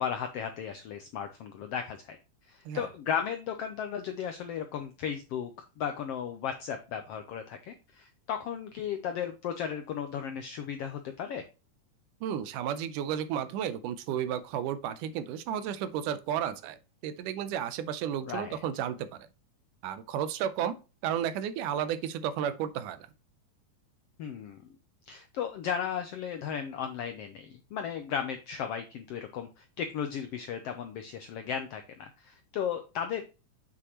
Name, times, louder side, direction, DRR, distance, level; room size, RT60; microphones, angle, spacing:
voice 1, 0.0-2.2 2.4-5.5 5.8-11.4 18.2-18.6 24.2-24.6 25.1-33.2, left 8 dB, 85° left, 1.3 m, -35 dB
voice 2, 12.2-19.1 19.8-20.8 21.0-23.1, right 9 dB, 80° right, 2.3 m, -33 dB
8.1 x 6.1 x 3.0 m
omnidirectional pair, 3.6 m